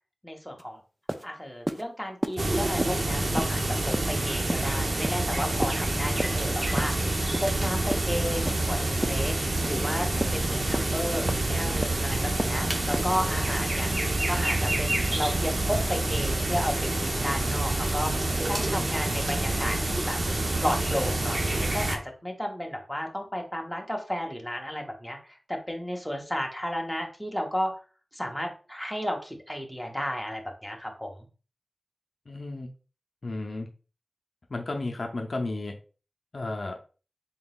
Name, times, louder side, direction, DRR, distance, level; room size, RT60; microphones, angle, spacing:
voice 1, 0.2-0.8 1.2-20.2 20.6-27.8 28.1-31.1, equal, 5° left, 1 dB, 0.8 m, -33 dB
sound 1, 0.6-0.7 1.1-1.2 1.7-1.8 2.2-2.4 2.8-2.9 3.4-3.5 3.9-4.1 4.5-4.6 5.0-5.2 5.6-5.8 6.2-6.4 6.8-6.9 7.3-7.5 7.9-8.1 8.5-8.6 9.0-9.2 9.6-9.8 10.2-10.3 10.7-10.9 11.3-11.4 11.8-12.0 12.4-12.6 12.9-13.1, right 1 dB, 20° right, 0.4 m, -31 dB
sound 2, 2.4-22.0, right 2 dB, 45° right, 0.7 m, -27 dB
voice 2, 32.3-32.7 33.2-33.7 34.5-35.8 36.3-36.8, left 2 dB, 60° left, 3 dB, 0.6 m, -33 dB
3.7 x 3.7 x 2.3 m, 0.36 s
wide cardioid pair, 85°, 0 cm